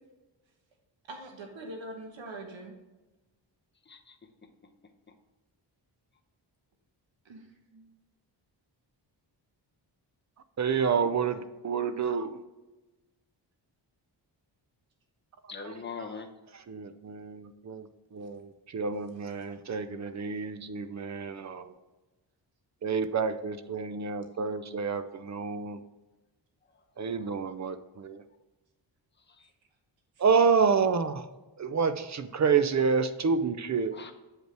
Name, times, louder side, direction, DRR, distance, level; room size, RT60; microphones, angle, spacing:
voice 1, 1.1-2.7 7.2-7.5 7.7-7.9 29.4-29.5, right 1 dB, 80° right, 2 dB, 1.2 m, -43 dB
voice 2, 3.9-4.2 15.5-16.3 24.3-24.4 26.7-26.8 27.2-27.3 29.3-29.5 33.9-34.1, left 5 dB, 25° left, 4 dB, 0.7 m, -42 dB
voice 3, 10.6-12.4 16.7-21.7 22.8-25.8 27.0-28.2 30.2-31.3 31.6-34.0, right 5 dB, 40° right, 11 dB, 0.5 m, -28 dB
7.6 x 5.3 x 3.3 m, 1.1 s
wide cardioid pair, 150°, 44 cm